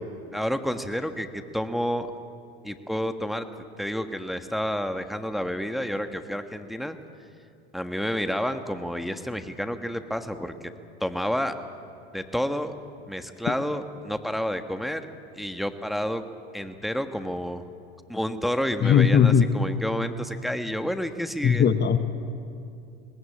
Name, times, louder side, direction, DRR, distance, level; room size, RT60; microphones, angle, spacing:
voice 1, 0.3-2.1 2.6-3.5 3.8-7.0 7.7-10.5 11.0-11.5 12.1-12.7 13.1-15.0 15.3-16.2 16.5-17.6 18.1-21.6, equal, ahead, 8 dB, 1.5 m, -29 dB
voice 2, 18.8-19.5 21.4-22.0, left 7 dB, 35° left, 10 dB, 1.2 m, -18 dB
22.0 x 19.5 x 8.7 m, 2.6 s
hypercardioid pair, 85°, 31 cm